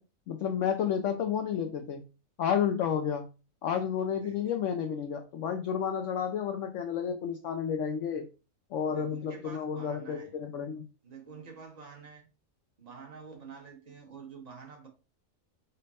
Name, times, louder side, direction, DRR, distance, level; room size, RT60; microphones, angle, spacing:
voice 1, 0.3-2.0 2.4-3.3 3.6-8.3 8.7-10.9, left 8 dB, 65° left, 0.8 m, -31 dB
voice 2, 0.8-1.1 4.1-4.4 8.8-10.3 11.0-12.3 12.8-14.9, right 5 dB, 30° right, 1.1 m, -48 dB
5.3 x 2.1 x 4.0 m
omnidirectional pair, 1.5 m